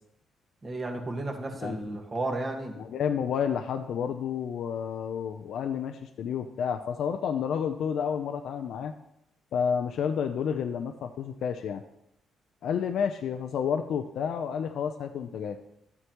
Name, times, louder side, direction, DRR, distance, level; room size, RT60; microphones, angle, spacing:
voice 1, 0.6-2.8, right 2 dB, 30° right, 2 dB, 1.6 m, -33 dB
voice 2, 1.6-2.0 2.8-8.9 9.5-11.8 12.6-15.6, left 7 dB, 70° left, 6 dB, 0.5 m, -30 dB
12.5 x 7.9 x 3.0 m, 0.81 s
cardioid pair, 90°, 0 cm